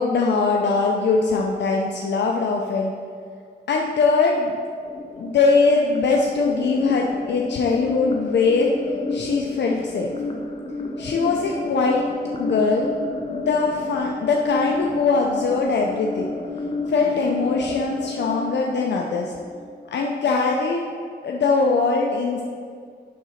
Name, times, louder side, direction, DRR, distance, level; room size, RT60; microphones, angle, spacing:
voice 1, 0.0-2.9 3.7-4.6 5.2-8.7 9.1-10.1 11.0-12.1 12.4-12.9 13.3-16.3 16.9-19.3 19.9-20.9 21.2-22.4, left 4 dB, 75° left, 0 dB, 0.6 m, -21 dB
sound 1, 4.8-19.8, left 3 dB, 35° left, 0.8 m, -31 dB
7.6 x 3.9 x 5.8 m, 2.2 s
wide cardioid pair, 100°, 18 cm